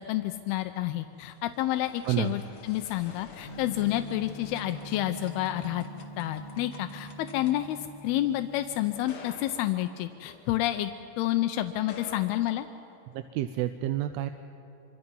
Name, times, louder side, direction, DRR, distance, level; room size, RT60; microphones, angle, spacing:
voice 1, 0.0-5.9 6.2-10.9 11.2-12.7, left 14 dB, 85° left, 8 dB, 2.6 m, -29 dB
sound 1, 0.8-11.1 11.7-13.2, left 4 dB, 50° left, 1.9 m, -51 dB
Gong, 3.4-9.3, right 2 dB, 10° right, 6.3 m, -44 dB
voice 2, 13.1-14.3, right 13 dB, 90° right, 9 dB, 2.6 m, -29 dB
26.5 x 24.5 x 5.5 m, 2.9 s
omnidirectional pair, 4.4 m